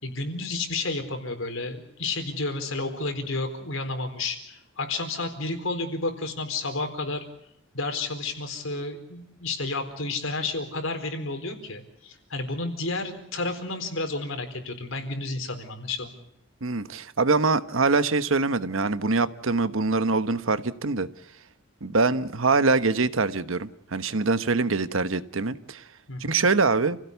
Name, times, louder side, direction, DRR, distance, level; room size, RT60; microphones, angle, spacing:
voice 1, 0.0-7.2 7.7-16.1 26.1-26.4, left 3 dB, 70° left, 7 dB, 4.3 m, -31 dB
voice 2, 16.6-21.1 21.8-25.8 26.2-27.0, right 3 dB, 70° right, 12 dB, 1.1 m, -24 dB
29.0 x 16.5 x 8.3 m, 0.77 s
head